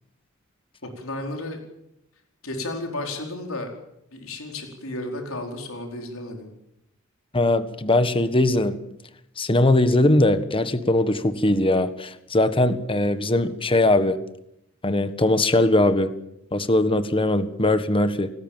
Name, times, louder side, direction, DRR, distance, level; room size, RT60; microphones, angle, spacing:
voice 1, 0.8-1.6 2.4-3.7 4.1-6.5, left 2 dB, 90° left, 3 dB, 4.7 m, -33 dB
voice 2, 7.3-8.8 9.4-14.2 14.8-16.1 16.5-18.3, left 2 dB, 25° left, 11 dB, 1.5 m, -20 dB
28.5 x 19.5 x 7.5 m, 0.81 s
head